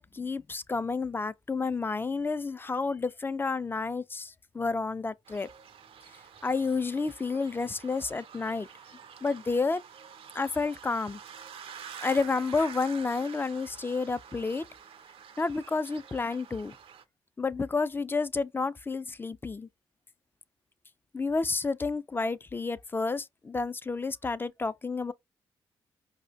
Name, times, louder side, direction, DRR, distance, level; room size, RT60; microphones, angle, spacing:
voice 1, 0.0-5.5 6.4-8.7 9.2-9.8 10.3-11.2 12.0-14.6 15.4-16.8 17.4-19.7 21.1-25.1, left 4 dB, 20° left, 0.3 m, -30 dB
sound 1, 5.2-17.0, right 7 dB, 65° right, 0.5 m, -48 dB
4.8 x 2.0 x 2.6 m
supercardioid pair, 55°, 10 cm